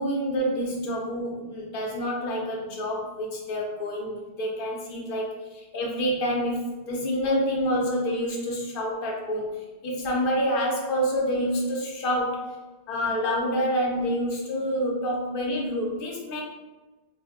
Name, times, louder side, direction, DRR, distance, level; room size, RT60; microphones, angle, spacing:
voice 1, 0.0-9.4 9.8-12.5 12.9-16.4, equal, 65° left, -2 dB, 0.8 m, -27 dB
2.4 x 2.0 x 3.4 m, 1.2 s
omnidirectional pair, 1.0 m